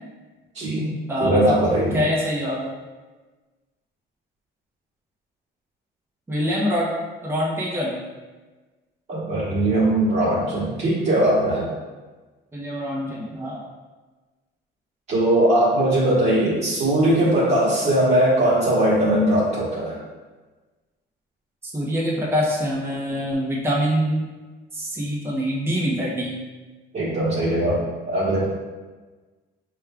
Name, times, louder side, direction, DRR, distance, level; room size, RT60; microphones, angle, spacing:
voice 1, 0.5-2.0 9.1-11.7 15.1-20.0 26.9-28.4, right 1 dB, 35° right, -9 dB, 1.4 m, -20 dB
voice 2, 1.1-1.6 1.9-2.7 6.3-6.9 7.2-8.0 12.5-13.6 21.7-24.2 24.7-26.4, equal, 10° right, -4 dB, 0.9 m, -24 dB
6.2 x 2.4 x 3.4 m, 1.3 s
cardioid pair, 155°, 19 cm